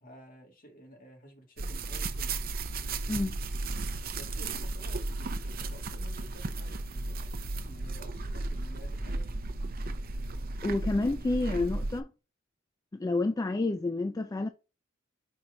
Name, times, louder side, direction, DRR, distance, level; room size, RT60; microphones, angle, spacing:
voice 1, 0.0-2.4 4.2-9.4, equal, 45° left, 2.1 m, -52 dB
sound 1, 1.6-12.0, right 2 dB, 45° right, 0.6 m, -35 dB
voice 2, 3.1-3.4 10.6-12.1 12.9-14.5, left 2 dB, 20° left, 0.3 m, -29 dB
5.4 x 4.4 x 4.9 m
head